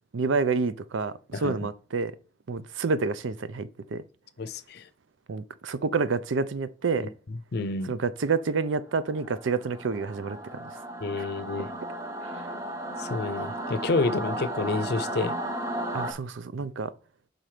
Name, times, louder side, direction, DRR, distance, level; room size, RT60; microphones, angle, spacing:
voice 1, 0.1-2.1 2.5-4.0 5.3-7.1 7.9-10.6 11.2-11.3 15.9-16.9, right 4 dB, 80° right, 0.5 m, -28 dB
voice 2, 4.4-4.9 7.0-7.9 11.0-11.7 13.0-15.4, left 3 dB, 55° left, 0.5 m, -29 dB
Singing / Musical instrument, 9.0-16.1, right 1 dB, 15° right, 0.8 m, -35 dB
5.9 x 3.9 x 4.9 m
head